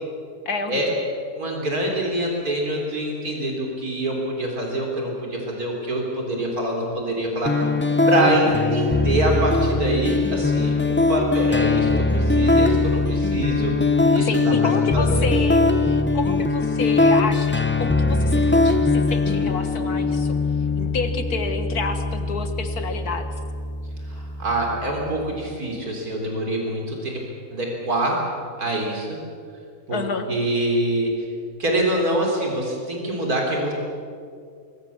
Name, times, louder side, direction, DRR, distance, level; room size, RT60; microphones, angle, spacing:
voice 1, 0.5-1.0 14.2-20.3 20.8-23.3 29.9-30.3, left 4 dB, 75° left, 7 dB, 2.2 m, -29 dB
voice 2, 1.4-7.6 8.1-14.5 14.9-15.3 24.0-27.2 27.5-28.3 28.6-29.2 29.9-30.0 30.3-31.3 31.6-33.7, right 1 dB, 70° right, 0 dB, 4.1 m, -25 dB
sound 1, 7.5-25.4, left 3 dB, 10° left, 0.6 m, -21 dB
24.0 x 22.5 x 7.1 m, 2.3 s
omnidirectional pair, 1.6 m